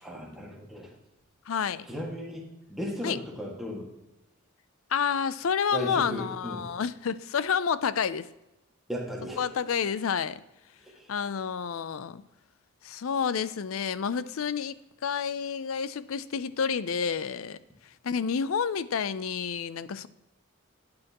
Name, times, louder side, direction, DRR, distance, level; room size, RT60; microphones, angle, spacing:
voice 1, 0.0-0.9 1.9-3.9 5.7-6.7 8.9-9.5 11.0-11.1, equal, ahead, -2 dB, 1.9 m, -36 dB
voice 2, 1.5-1.9 3.0-3.2 4.9-8.3 9.4-10.4 11.1-12.2 12.8-14.8 15.0-17.6 18.0-20.1, left 6 dB, 70° left, 16 dB, 0.5 m, -29 dB
12.0 x 8.7 x 3.0 m, 0.97 s
head